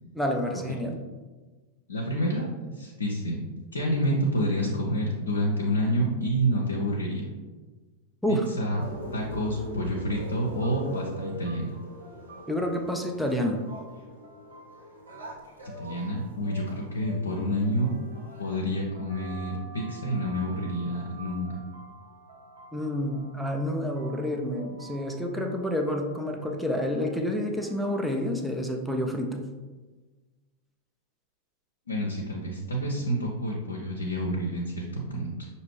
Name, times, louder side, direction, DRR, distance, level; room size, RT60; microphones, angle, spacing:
voice 1, 0.1-1.0 8.2-8.5 12.5-13.6 22.7-29.4, left 1 dB, ahead, 2 dB, 0.5 m, -29 dB
voice 2, 1.9-3.4 3.7-7.3 8.3-8.9 9.1-11.7 15.6-17.9 18.4-21.5 31.9-35.5, equal, 75° left, -1 dB, 0.6 m, -28 dB
sound 1, 8.8-18.6, equal, 85° right, 1.1 m, -42 dB
sound 2, 10.6-28.4, left 1 dB, 65° right, 1.3 m, -50 dB
sound 3, 19.1-28.1, right 4 dB, 40° left, 0.9 m, -51 dB
5.8 x 2.6 x 3.1 m, 1.3 s
figure-of-eight pair, 90°, 0 cm